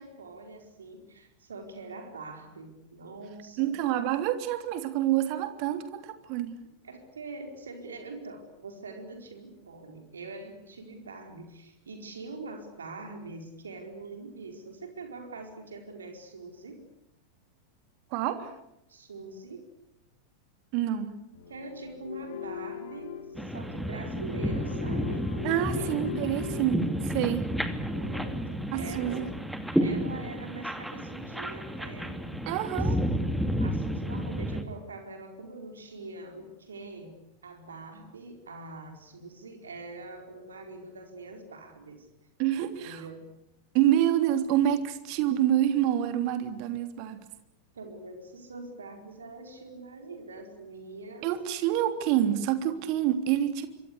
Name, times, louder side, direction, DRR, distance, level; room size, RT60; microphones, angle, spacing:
voice 1, 0.0-3.7 6.8-16.8 18.9-19.6 21.5-25.3 25.7-25.9 27.9-29.3 29.7-32.9 33.6-37.2 37.4-42.1 42.8-43.2 43.9-44.1 47.7-51.3, right 3 dB, 70° right, 4 dB, 4.6 m, -43 dB
voice 2, 3.6-6.6 18.1-18.5 20.7-21.2 25.4-27.4 28.7-29.3 32.5-33.0 42.4-43.0 43.7-47.2 51.2-53.7, right 11 dB, 45° right, 8 dB, 3.3 m, -27 dB
sound 1, 21.3-26.7, left 8 dB, 55° left, 2.8 m, -40 dB
sound 2, 23.3-34.6, equal, ahead, 2.6 m, -31 dB
26.5 x 25.0 x 8.3 m, 0.83 s
figure-of-eight pair, 90°, 0 cm